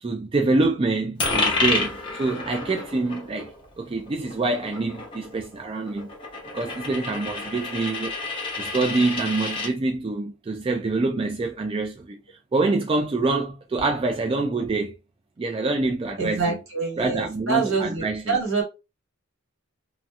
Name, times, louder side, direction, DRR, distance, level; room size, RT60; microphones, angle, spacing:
voice 1, 0.0-3.5 3.8-6.1 6.5-8.1 8.6-14.9 15.4-16.4 17.0-18.4, right 3 dB, 25° right, 0.3 m, -26 dB
Coin (dropping), 1.2-9.7, left 3 dB, 25° left, 1.1 m, -30 dB
voice 2, 16.2-18.6, right 4 dB, 70° right, 1.7 m, -26 dB
3.1 x 2.7 x 2.3 m
head